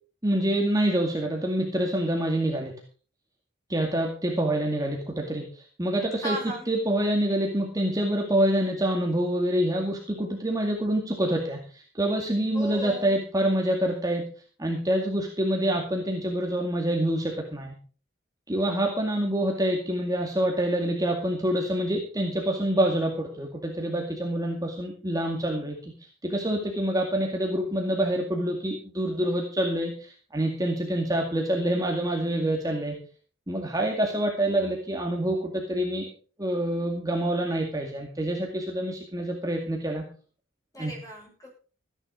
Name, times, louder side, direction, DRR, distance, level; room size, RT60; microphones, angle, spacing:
voice 1, 0.2-2.7 3.7-6.4 6.7-14.3 14.6-17.8 18.5-25.9 26.2-33.0 33.5-36.1 36.4-40.0 40.8-40.9, right 1 dB, 20° right, 0 dB, 2.2 m, -26 dB
voice 2, 6.2-6.6 12.5-13.2 40.7-41.5, right 1 dB, 15° left, -1 dB, 6.9 m, -35 dB
15.0 x 10.0 x 5.1 m, 0.38 s
head